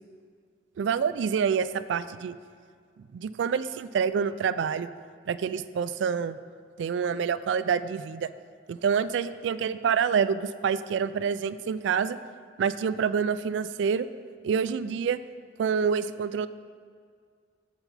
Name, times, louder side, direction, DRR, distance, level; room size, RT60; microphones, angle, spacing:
voice 1, 0.8-2.4 3.1-4.9 5.3-6.4 6.8-8.3 8.7-12.2 12.6-14.1 14.4-15.2 15.6-16.5, right 6 dB, 85° right, 14 dB, 0.3 m, -27 dB
7.7 x 7.0 x 4.0 m, 2.1 s
head